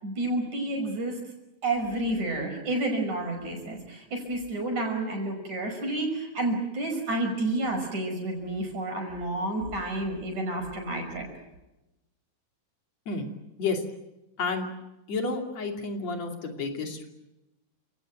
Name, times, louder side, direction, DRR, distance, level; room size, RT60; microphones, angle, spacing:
voice 1, 0.0-1.2 1.6-11.3, right 2 dB, 60° right, 4 dB, 6.8 m, -30 dB
voice 2, 14.4-14.7 15.1-17.1, left 4 dB, 55° left, 3 dB, 3.9 m, -30 dB
29.5 x 18.0 x 9.2 m, 0.98 s
omnidirectional pair, 3.8 m